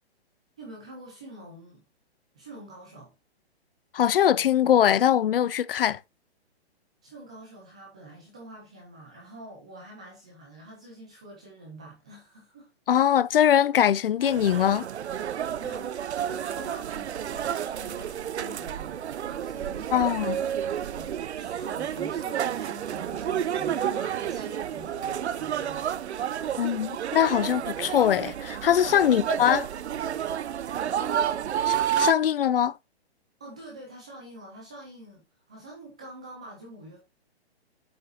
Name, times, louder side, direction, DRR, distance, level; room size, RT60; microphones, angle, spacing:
voice 1, 0.6-1.8 2.3-3.1 7.0-12.7 15.6-20.1 20.9-26.0 30.9-31.2 33.4-37.0, right 1 dB, 5° right, 0.4 m, -46 dB
voice 2, 3.9-6.0 12.9-14.9 19.9-20.4 26.6-29.6 31.7-32.8, left 10 dB, 60° left, 0.5 m, -22 dB
sound 1, 14.2-32.1, right 9 dB, 80° right, 0.7 m, -30 dB
8.0 x 5.4 x 3.9 m
hypercardioid pair, 165°, 33 cm